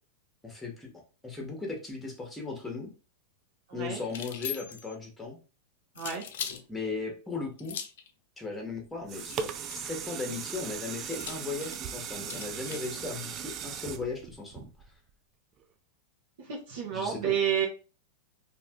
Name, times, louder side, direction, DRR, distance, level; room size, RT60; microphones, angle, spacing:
voice 1, 0.4-0.9 1.2-2.9 3.7-5.4 6.7-7.8 8.4-14.6 16.9-17.3, left 4 dB, 5° left, 1 dB, 1.0 m, -37 dB
voice 2, 3.7-4.0 6.0-6.3 16.5-17.7, right 9 dB, 70° right, -2 dB, 0.9 m, -30 dB
sound 1, 4.1-5.0 6.0-6.6 7.6-8.1 9.2-9.9 11.1-12.9, left 9 dB, 70° left, 0.5 m, -40 dB
sound 2, 8.8-15.1 15.6-15.7, right 7 dB, 35° right, 0.3 m, -38 dB
2.7 x 2.4 x 3.5 m, 0.35 s
hypercardioid pair, 125°, 0 cm